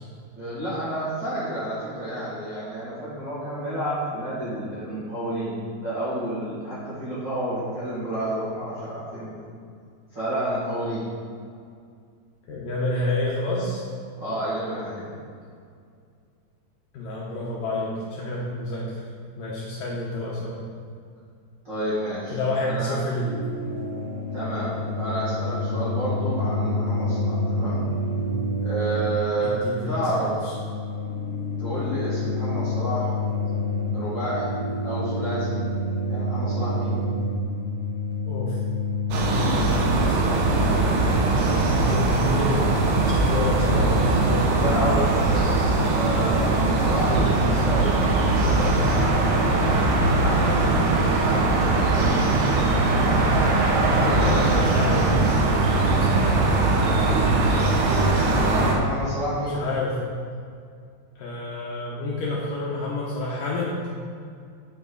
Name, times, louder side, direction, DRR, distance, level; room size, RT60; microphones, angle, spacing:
voice 1, 0.4-9.3 10.1-11.0 14.2-15.1 21.6-23.0 24.3-27.8 28.6-30.3 31.6-33.2 33.9-34.5 34.8-35.7 36.1-37.0 44.5-45.6 45.9-47.9 48.4-49.4 50.2-50.8 51.1-51.6 58.7-59.6, right 1 dB, 35° right, -11 dB, 2.2 m, -30 dB
voice 2, 12.5-13.8 16.9-18.9 19.4-20.6 22.3-23.3 29.4-30.5 38.3-38.6 39.4-41.1 41.7-44.5 47.1-47.6 53.8-55.1 55.7-57.7 59.4-60.0 61.2-63.8, left 2 dB, 70° left, -5 dB, 2.3 m, -29 dB
sound 1, 23.3-39.5, left 1 dB, 50° left, 1.6 m, -28 dB
sound 2, 39.1-58.8, right 2 dB, 75° right, 3.0 m, -21 dB
8.8 x 8.0 x 4.1 m, 2.2 s
omnidirectional pair, 4.8 m